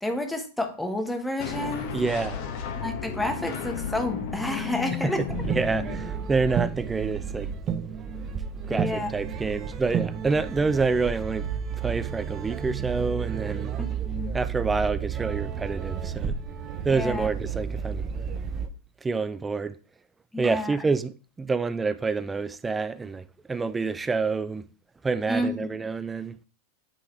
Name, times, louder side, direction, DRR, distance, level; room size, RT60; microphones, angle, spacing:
voice 1, 0.0-2.0 2.8-5.2 8.7-9.1 13.8-14.3 16.9-17.3 20.3-20.8 25.3-25.7, left 1 dB, 5° left, 1.2 m, -30 dB
sound 1, 1.4-6.5, left 7 dB, 65° left, 1.2 m, -34 dB
voice 2, 1.9-2.4 5.0-7.5 8.7-11.4 11.8-13.7 14.3-16.4 16.8-18.1 19.0-19.8 20.4-24.6 25.0-26.4, right 4 dB, 15° right, 0.4 m, -28 dB
sound 2, 5.3-18.7, right 7 dB, 35° right, 0.8 m, -32 dB
8.2 x 3.9 x 3.2 m
hypercardioid pair, 105°, 0 cm